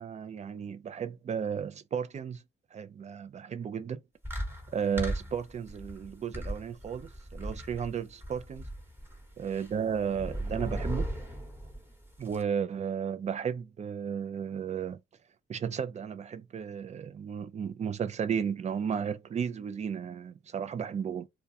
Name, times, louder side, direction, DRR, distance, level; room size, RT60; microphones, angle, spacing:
voice 1, 0.0-2.4 2.7-4.0 4.7-8.6 9.4-11.0 12.2-15.0 15.5-21.2, right 7 dB, 35° right, 0.4 m, -34 dB
sound 1, 4.3-12.4, equal, 10° right, 1.1 m, -37 dB
2.3 x 2.2 x 2.7 m
cardioid pair, 90°, 20 cm